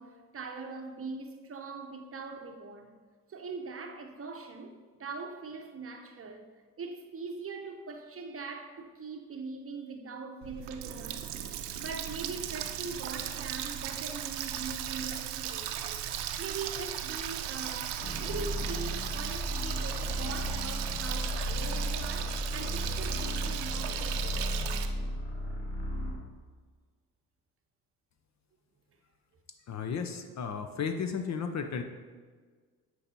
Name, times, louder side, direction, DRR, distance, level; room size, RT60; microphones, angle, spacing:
voice 1, 0.0-2.9 3.3-6.5 6.8-11.3 11.8-16.0 16.4-24.8, right 4 dB, 30° right, 0.8 m, -42 dB
Water tap faucet, 10.4-24.9, right 10 dB, 60° right, 0.7 m, -37 dB
sound 1, 18.0-26.2, equal, 70° left, 1.6 m, -34 dB
voice 2, 29.7-31.8, left 6 dB, 40° left, 0.6 m, -34 dB
9.9 x 4.6 x 2.9 m
hypercardioid pair, 50°, 45 cm